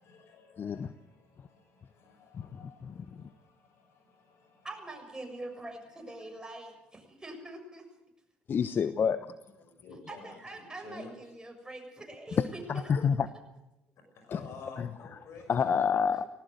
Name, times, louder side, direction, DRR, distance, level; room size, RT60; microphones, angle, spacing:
voice 1, 0.0-6.5 9.6-11.3 14.1-15.5, left 4 dB, 65° left, 6 dB, 6.4 m, -52 dB
voice 2, 0.6-0.9 2.3-2.5 2.8-3.3 8.5-9.3 12.4-13.3 14.3-14.4 14.8-14.9 15.5-16.3, left 6 dB, 45° left, 13 dB, 0.9 m, -28 dB
voice 3, 4.6-7.9 10.1-12.9, right 2 dB, 15° right, 3 dB, 7.0 m, -44 dB
19.5 x 18.0 x 8.0 m, 0.90 s
hypercardioid pair, 65°, 5 cm